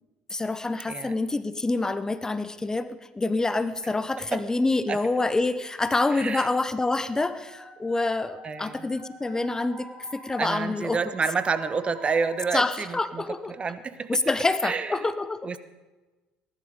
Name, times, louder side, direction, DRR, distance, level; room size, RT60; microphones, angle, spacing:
voice 1, 0.3-11.0 12.5-13.5 14.1-15.6, left 2 dB, 15° left, 13 dB, 0.9 m, -27 dB
voice 2, 6.1-6.5 8.4-8.9 10.4-13.2 13.5-14.2 14.6-15.1 15.4-15.6, right 5 dB, 35° right, 13 dB, 1.1 m, -29 dB
sound 1, 6.9-13.7, right 1 dB, 55° right, 5.5 m, -47 dB
19.5 x 11.5 x 5.1 m, 1.2 s
supercardioid pair, 75°, 4 cm